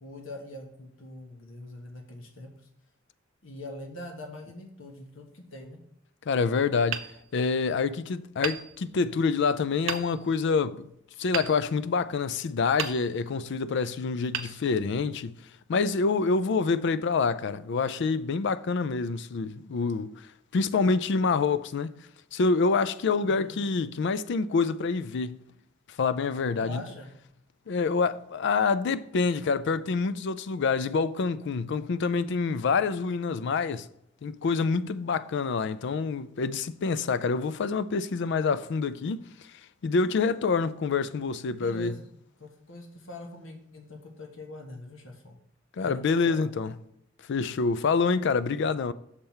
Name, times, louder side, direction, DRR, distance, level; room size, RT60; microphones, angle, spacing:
voice 1, 0.0-2.5 3.4-5.8 23.2-23.6 26.6-27.1 41.6-42.0 42.4-45.4 45.8-46.5, left 1 dB, 80° left, 1.3 m, -43 dB
voice 2, 6.3-7.1 7.3-10.9 11.2-15.3 15.7-20.3 20.5-21.9 22.3-25.4 26.0-26.8 27.7-33.9 34.2-39.2 39.8-42.0 45.8-46.7 47.3-48.9, left 4 dB, 60° left, 0.4 m, -27 dB
Hammer, 6.9-7.9 8.4-9.3 9.9-10.5 11.3-12.3 12.8-13.5 14.3-15.3, right 8 dB, 85° right, 0.6 m, -37 dB
6.7 x 4.4 x 5.5 m
head